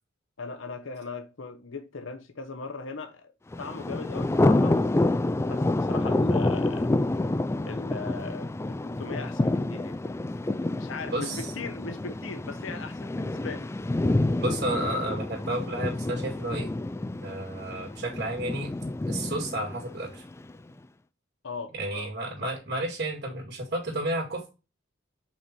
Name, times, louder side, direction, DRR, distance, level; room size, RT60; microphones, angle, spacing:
voice 1, 0.4-3.3 3.6-6.9 7.7-10.0 10.5-13.7 21.4-22.1 22.4-22.5, left 4 dB, 85° left, 0.9 m, -39 dB
Thunder, 3.5-20.5, left 2 dB, 15° left, 0.3 m, -28 dB
voice 2, 11.1-11.5 14.4-16.7 17.2-18.7 19.1-20.2 21.7-24.5, right 1 dB, 55° right, 2.4 m, -31 dB
5.7 x 4.3 x 4.5 m
head